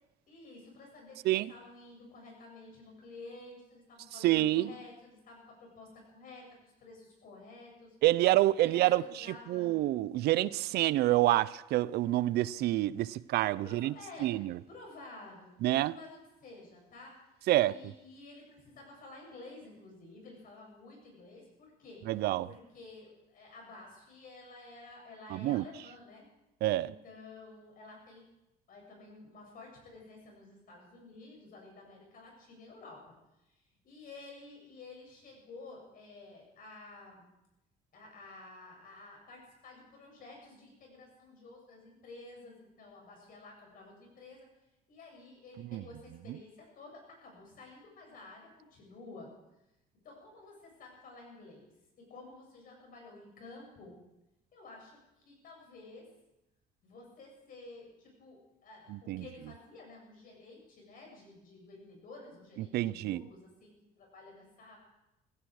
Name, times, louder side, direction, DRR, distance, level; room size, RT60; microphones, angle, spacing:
voice 1, 0.3-8.0 8.6-9.7 13.6-14.3 14.7-15.5 15.8-17.1 17.6-22.0 22.4-26.3 26.8-28.3 28.7-33.1 33.8-37.3 37.9-44.5 44.9-49.3 50.0-51.7 52.0-54.0 54.5-56.1 56.8-64.8, left 3 dB, 55° left, 7.3 m, -52 dB
voice 2, 4.2-4.7 8.0-13.9 14.2-14.6 15.6-15.9 17.5-17.7 22.1-22.5 25.3-25.6 26.6-26.9 45.7-45.8 58.9-59.2 62.6-63.2, right 16 dB, 75° right, 0.5 m, -28 dB
17.0 x 15.0 x 4.8 m
cardioid pair, 110°, 17 cm